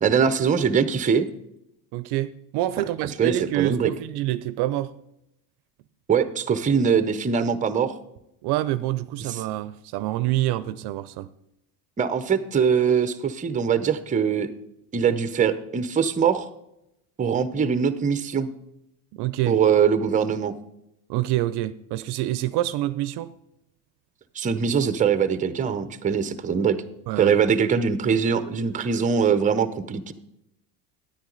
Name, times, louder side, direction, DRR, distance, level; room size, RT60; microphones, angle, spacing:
voice 1, 0.0-1.3 3.2-3.9 6.1-8.0 9.3-9.4 12.0-14.5 14.9-16.5 17.2-18.5 19.5-20.5 24.3-26.8 27.2-30.1, right 6 dB, 15° right, 0.6 m, -22 dB
voice 2, 1.9-4.9 8.4-11.3 19.1-19.6 21.1-23.3 27.1-27.3, right 15 dB, 60° right, 0.5 m, -27 dB
9.6 x 9.4 x 3.9 m
supercardioid pair, 105°, 46 cm